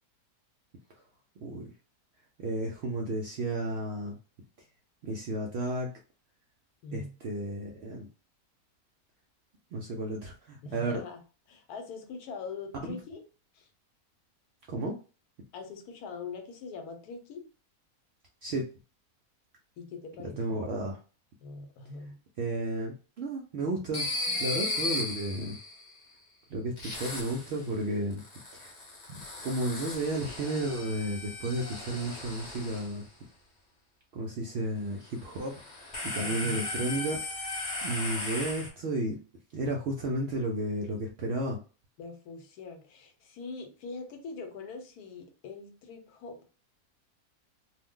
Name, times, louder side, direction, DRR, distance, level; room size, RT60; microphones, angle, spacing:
voice 1, 1.4-1.7 2.4-4.2 5.0-5.9 6.9-8.1 9.7-11.0 12.9-13.0 14.7-15.0 18.4-18.7 20.4-21.0 22.4-25.6 26.5-28.2 28.5-28.7 29.1-33.0 34.1-35.6 36.0-39.2 39.5-41.6, right 1 dB, 70° right, 0 dB, 0.6 m, -33 dB
voice 2, 6.8-7.1 10.6-11.2 11.5-13.2 13.5-13.7 15.5-17.4 19.8-20.6 21.4-22.2 36.2-36.6 42.0-46.4, left 4 dB, 80° left, 5 dB, 1.2 m, -42 dB
sound 1, 23.9-26.0 26.8-27.7 28.1-33.0 35.2-38.7, left 2 dB, 40° left, 0.7 m, -36 dB
2.5 x 2.1 x 3.6 m, 0.35 s
omnidirectional pair, 1.6 m